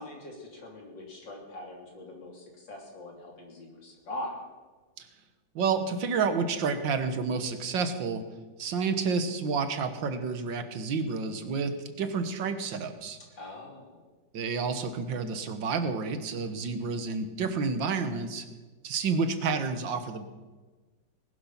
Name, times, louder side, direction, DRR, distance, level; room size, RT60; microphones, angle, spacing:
voice 1, 0.0-4.3 13.4-14.0, left 1 dB, 80° left, 0 dB, 4.1 m, -42 dB
voice 2, 5.6-8.3 8.6-13.2 14.3-18.5 18.8-20.3, right 5 dB, 80° right, 9 dB, 2.0 m, -30 dB
19.5 x 12.0 x 5.8 m, 1.3 s
omnidirectional pair, 2.0 m